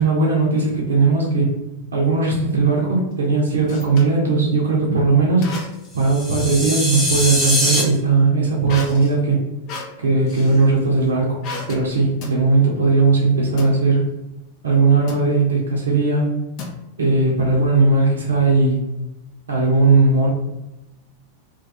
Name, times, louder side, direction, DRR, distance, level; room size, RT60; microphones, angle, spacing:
voice 1, 0.0-1.5 1.9-5.5 5.9-9.4 10.0-11.4 11.7-14.0 14.6-16.3 17.0-18.8 19.5-20.3, right 3 dB, 70° right, -3 dB, 0.6 m, -18 dB
sound 1, 3.1-4.2 5.4-6.0 6.4-7.6 8.7-10.7 11.4-11.9 12.2-12.4 13.6-13.8 15.1-15.3 16.6-17.2, left 2 dB, 40° left, 0.5 m, -34 dB
sound 2, 6.0-7.8, equal, 5° right, 0.9 m, -22 dB
2.3 x 2.2 x 2.6 m, 0.95 s
figure-of-eight pair, 90°, 0 cm